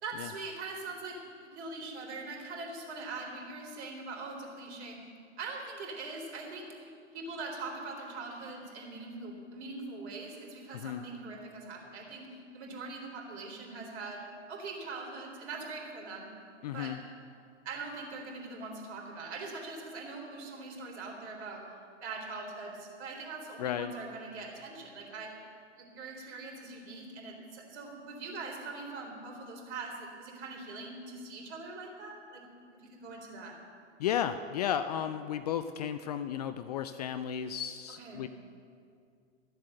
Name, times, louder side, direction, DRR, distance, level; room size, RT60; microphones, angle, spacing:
voice 1, 0.0-5.0 5.4-6.9 7.1-14.2 14.5-16.3 16.7-16.9 17.6-21.6 22.0-25.5 25.8-32.4 32.8-33.6 37.9-38.2, right 3 dB, 60° right, 0 dB, 3.6 m, -42 dB
voice 2, 16.6-17.0 23.6-23.9 34.0-38.3, left 9 dB, 35° left, 11 dB, 0.4 m, -34 dB
14.0 x 7.8 x 7.6 m, 2.4 s
hypercardioid pair, 120°, 38 cm